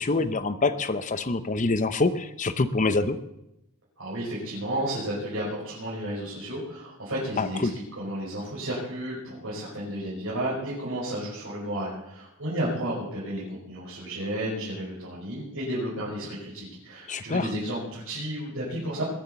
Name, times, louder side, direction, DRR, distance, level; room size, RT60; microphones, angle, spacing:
voice 1, 0.0-3.2 7.4-7.7 17.1-17.5, left 3 dB, 35° left, 11 dB, 0.8 m, -25 dB
voice 2, 4.0-19.0, right 1 dB, 65° right, -7 dB, 5.5 m, -32 dB
21.0 x 7.3 x 7.0 m, 0.85 s
head